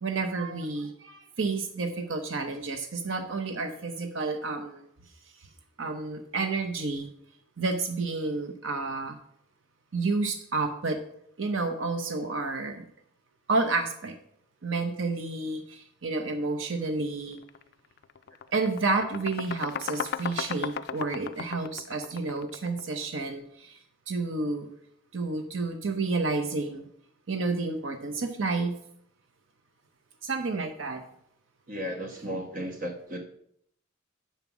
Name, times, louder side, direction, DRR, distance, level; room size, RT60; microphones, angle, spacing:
voice 1, 0.0-4.8 5.8-7.1 7.6-9.2 9.9-11.0 11.4-12.8 13.5-14.2 14.6-17.4 18.5-23.8 24.1-24.7 25.1-26.8 27.3-28.7 30.2-31.0, right 3 dB, 80° right, 6 dB, 0.8 m, -30 dB
sound 1, 17.4-17.6 18.0-22.9, left 8 dB, 55° left, 0.3 m, -35 dB
voice 2, 31.7-33.2, equal, 40° right, 2 dB, 1.1 m, -34 dB
7.1 x 5.4 x 6.0 m, 0.70 s
head